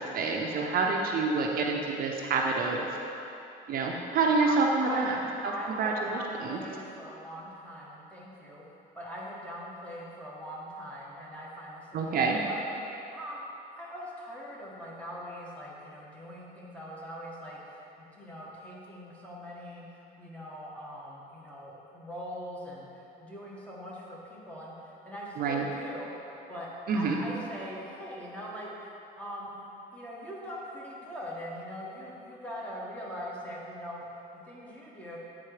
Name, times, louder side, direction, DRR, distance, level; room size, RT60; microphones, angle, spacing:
voice 1, 0.0-2.9 3.7-5.2 5.4-5.5 5.8-6.6 11.9-12.4 25.4-25.6 26.9-27.2, right 4 dB, 60° right, 0 dB, 0.7 m, -27 dB
voice 2, 4.4-5.1 5.4-8.6 8.9-12.6 13.1-13.4 13.7-26.1 26.5-29.5 29.9-35.2, equal, 10° left, -5 dB, 1.5 m, -42 dB
9.0 x 3.8 x 4.9 m, 2.9 s
cardioid pair, 110°, 17 cm